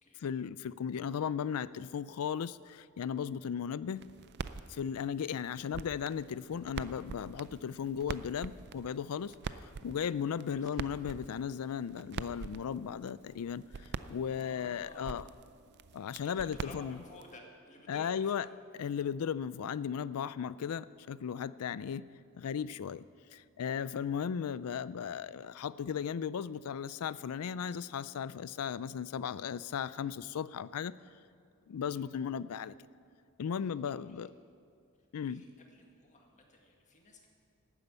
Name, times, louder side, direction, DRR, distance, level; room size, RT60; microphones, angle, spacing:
voice 1, 0.2-4.0 4.7-15.2 15.9-17.0 17.9-18.5 18.8-22.0 22.3-23.1 23.3-30.9 31.7-32.7 33.4-34.3 35.1-35.4, left 7 dB, 75° left, 18 dB, 0.4 m, -36 dB
sound 1, 4.0-17.4, right 5 dB, 50° right, 0.4 m, -45 dB
voice 2, 14.3-15.2 16.2-18.5 31.8-32.0 33.6-34.3 35.2-37.3, left 2 dB, 35° left, 1 dB, 1.9 m, -54 dB
12.0 x 9.6 x 8.2 m, 2.3 s
head